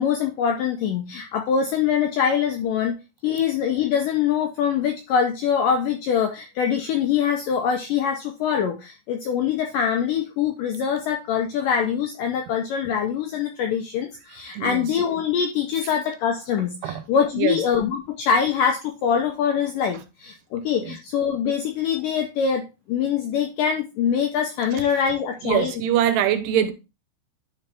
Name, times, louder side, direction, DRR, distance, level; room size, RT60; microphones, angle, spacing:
voice 1, 0.0-3.0 3.2-25.7, left 7 dB, 85° left, 1.9 m, -24 dB
voice 2, 25.4-26.7, right 11 dB, 85° right, 3.0 m, -23 dB
9.9 x 4.3 x 3.4 m
omnidirectional pair, 4.7 m